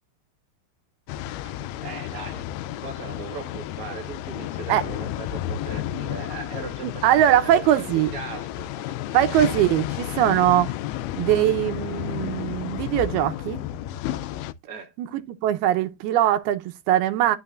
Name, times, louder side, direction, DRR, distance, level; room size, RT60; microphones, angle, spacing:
sound 1, 1.1-14.5, left 12 dB, 85° left, 2.5 m, -32 dB
voice 1, 1.4-2.4 2.8-7.0 7.4-7.9 8.1-9.4 14.6-14.9, right 5 dB, 45° right, 2.2 m, -39 dB
voice 2, 6.8-8.1 9.1-10.7 11.2-13.6 15.0-17.4, right 12 dB, 85° right, 2.7 m, -21 dB
11.0 x 6.2 x 2.5 m
omnidirectional pair, 4.4 m